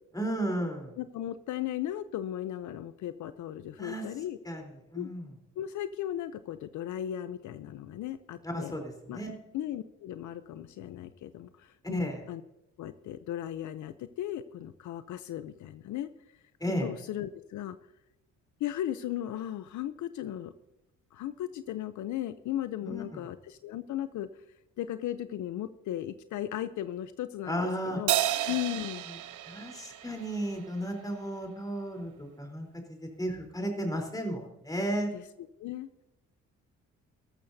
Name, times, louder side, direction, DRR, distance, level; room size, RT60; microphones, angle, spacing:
voice 1, 0.1-0.9 3.8-4.1 4.4-4.6 4.9-5.3 8.4-9.3 11.8-12.2 16.6-16.9 22.8-23.2 27.5-28.0 29.5-35.1, equal, 10° left, 2 dB, 3.7 m, -34 dB
voice 2, 1.0-4.4 4.9-5.1 5.6-8.8 9.1-9.2 9.5-12.4 12.8-16.1 16.8-17.8 18.6-20.5 21.1-24.3 24.8-28.2 28.5-29.0 35.1-35.3 35.6-35.9, left 12 dB, 75° left, 12 dB, 0.6 m, -36 dB
Crash cymbal, 28.1-30.8, right 13 dB, 80° right, 0.8 m, -31 dB
14.0 x 13.5 x 2.7 m, 0.92 s
cardioid pair, 90°, 30 cm